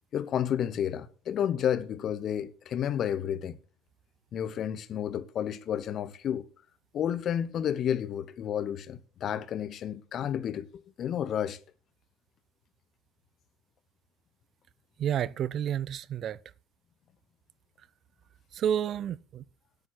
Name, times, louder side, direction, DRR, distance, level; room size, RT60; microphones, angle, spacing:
voice 1, 0.1-3.6 4.3-6.4 6.9-10.7 11.0-11.6, left 9 dB, 50° left, 1.0 m, -31 dB
voice 2, 15.0-16.4 18.5-19.4, right 9 dB, 50° right, 0.4 m, -30 dB
8.7 x 8.6 x 6.2 m
hypercardioid pair, 65°, 0 cm